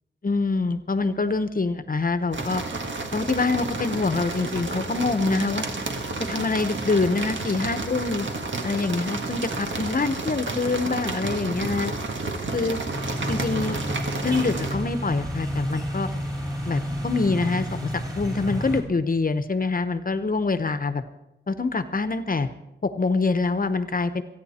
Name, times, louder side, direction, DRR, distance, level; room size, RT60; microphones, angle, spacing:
voice 1, 0.2-2.6 3.1-5.7 6.2-8.3 8.6-11.9 12.5-12.8 13.3-13.8 14.2-16.1 16.7-21.0 21.5-22.5 22.8-24.2, left 3 dB, 50° left, 11 dB, 1.0 m, -25 dB
sound 1, 2.3-14.8, right 3 dB, 80° right, 1.7 m, -31 dB
sound 2, 12.9-18.8, equal, 20° right, 4.5 m, -31 dB
28.0 x 9.3 x 4.3 m, 0.89 s
wide cardioid pair, 70°, 19 cm